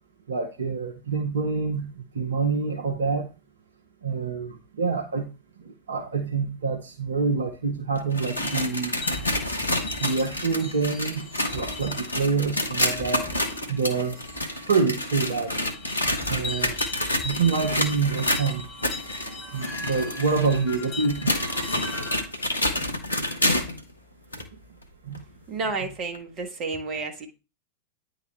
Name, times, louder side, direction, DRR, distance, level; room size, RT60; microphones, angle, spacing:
voice 1, 0.3-1.9 2.1-3.3 4.0-5.3 5.7-9.0 10.0-11.2 11.5-13.3 13.7-14.2 14.7-15.6 16.3-16.8 17.2-18.6 19.5-21.4 25.1-25.2, right 4 dB, 65° right, 0.7 m, -26 dB
sound 1, 8.0-23.8 24.3-24.4 25.1-25.2 26.1-26.2, left 1 dB, 80° left, 0.9 m, -28 dB
sound 2, 8.4-22.3, left 2 dB, 35° left, 2.3 m, -40 dB
voice 2, 25.5-27.3, right 3 dB, 35° right, 1.3 m, -31 dB
9.4 x 3.9 x 3.2 m
figure-of-eight pair, 90°, 0 cm